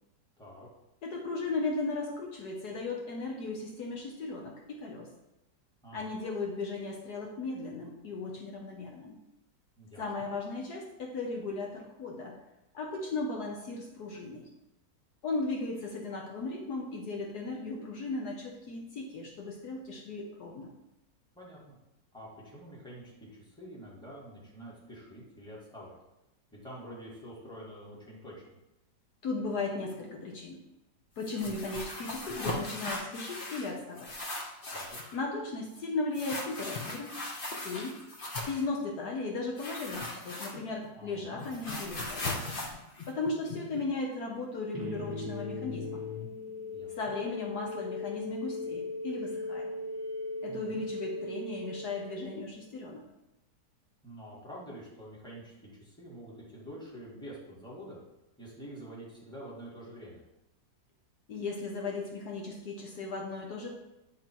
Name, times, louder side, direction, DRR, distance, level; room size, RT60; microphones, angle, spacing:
voice 1, 0.4-0.7 5.8-6.1 9.8-10.3 21.3-21.8 22.1-25.9 26.5-28.3 34.7-35.0 40.9-41.6 46.7-47.2 50.5-50.9 54.0-58.0 58.4-60.2, equal, ahead, -6 dB, 1.9 m, -47 dB
voice 2, 1.0-5.1 5.9-9.2 10.0-12.4 12.7-14.4 15.2-20.7 29.2-30.6 31.2-34.1 35.1-37.2 37.6-37.9 38.5-42.4 43.1-46.0 46.9-49.7 50.4-53.0 61.3-63.7, left 3 dB, 65° left, 0 dB, 1.4 m, -36 dB
sound 1, 31.2-33.7 34.0-35.1 36.1-38.6 39.6-40.9 41.1-43.8, left 2 dB, 35° left, 1.1 m, -38 dB
sound 2, 44.7-52.6, left 2 dB, 15° right, 0.9 m, -38 dB
9.4 x 3.7 x 4.6 m, 0.94 s
omnidirectional pair, 1.9 m